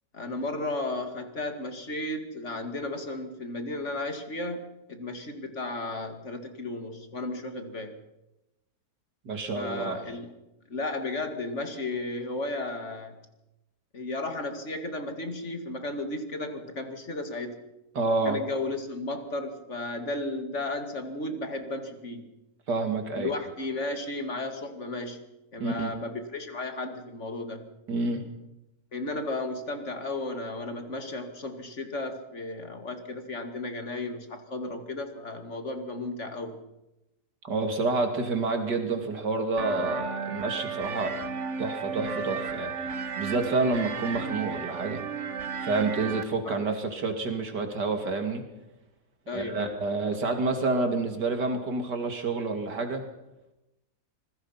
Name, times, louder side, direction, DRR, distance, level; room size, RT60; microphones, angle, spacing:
voice 1, 0.1-7.9 9.5-10.3 10.7-13.2 13.9-17.6 18.3-22.3 23.2-25.2 25.5-27.7 28.9-36.6 46.5-46.7 49.3-49.8, left 2 dB, 45° left, 6 dB, 2.5 m, -34 dB
voice 2, 9.2-10.0 17.9-18.4 22.7-23.3 25.6-25.9 27.9-28.2 37.4-41.2 41.6-42.7 43.2-45.0 45.6-48.4 49.3-53.0, right 3 dB, 80° right, 5 dB, 3.2 m, -28 dB
sound 1, 39.6-46.2, right 5 dB, 45° right, 1.4 m, -34 dB
26.0 x 21.0 x 5.8 m, 0.94 s
omnidirectional pair, 1.8 m